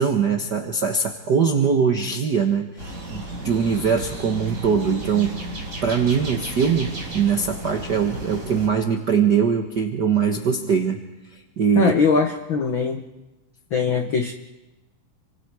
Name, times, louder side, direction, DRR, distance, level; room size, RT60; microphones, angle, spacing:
voice 1, 0.0-5.4 5.8-11.0 11.3-11.9, right 6 dB, 65° right, 4 dB, 1.0 m, -22 dB
sound 1, 2.8-8.7, right 1 dB, 25° right, 4.6 m, -34 dB
voice 2, 11.8-13.0 13.7-14.3, left 5 dB, 70° left, 5 dB, 1.1 m, -21 dB
29.0 x 25.0 x 4.8 m, 1.1 s
omnidirectional pair, 3.8 m